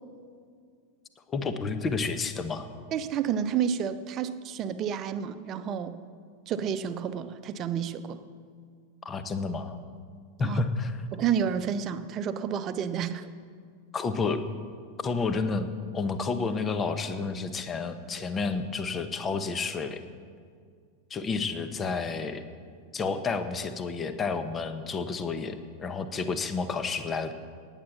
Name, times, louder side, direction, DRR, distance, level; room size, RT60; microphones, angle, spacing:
voice 1, 1.3-2.7 9.0-9.8 10.4-11.0 13.9-14.4 15.0-15.7 15.9-20.0 21.1-22.4 22.9-27.3, left 4 dB, 20° left, 10 dB, 1.1 m, -30 dB
voice 2, 2.9-6.0 6.5-8.2 10.4-10.6 11.1-13.3, right 8 dB, 30° right, 10 dB, 0.9 m, -30 dB
17.5 x 9.2 x 7.2 m, 2.1 s
figure-of-eight pair, 90°, 0 cm